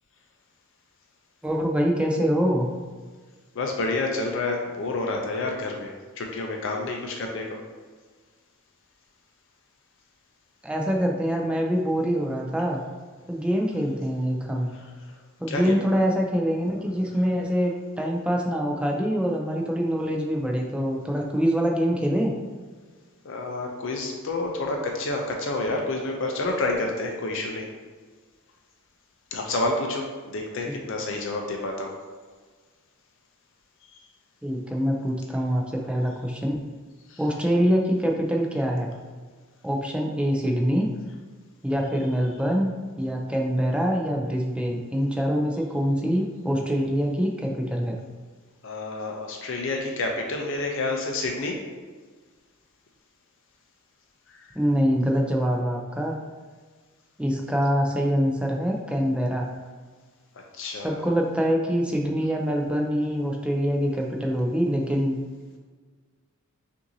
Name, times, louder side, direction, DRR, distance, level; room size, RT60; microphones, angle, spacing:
voice 1, 1.4-2.7 10.6-12.8 13.3-14.7 15.4-22.3 30.7-30.8 34.4-36.6 37.2-38.9 39.6-40.9 41.6-42.7 43.0-48.0 54.5-56.2 57.2-59.5 60.8-65.2, equal, 5° right, 0 dB, 0.4 m, -24 dB
voice 2, 3.5-7.6 14.7-14.8 15.1-15.2 15.5-15.8 23.2-27.7 29.3-32.0 37.1-37.2 48.6-51.6 54.3-54.6 60.5-61.0, left 2 dB, 60° left, 1 dB, 0.5 m, -29 dB
5.7 x 2.6 x 2.7 m, 1.5 s
head